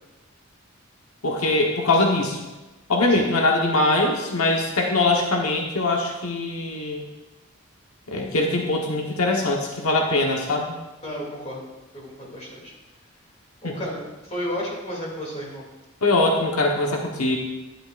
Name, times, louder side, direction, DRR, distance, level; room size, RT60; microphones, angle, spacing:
voice 1, 1.2-2.4 2.9-7.0 8.1-10.7 13.6-13.7 16.0-17.4, left 2 dB, 90° left, 0 dB, 1.2 m, -22 dB
voice 2, 11.0-11.6 11.9-12.6 13.6-15.6, equal, 30° left, -3 dB, 2.7 m, -32 dB
11.5 x 10.5 x 2.5 m, 1.1 s
head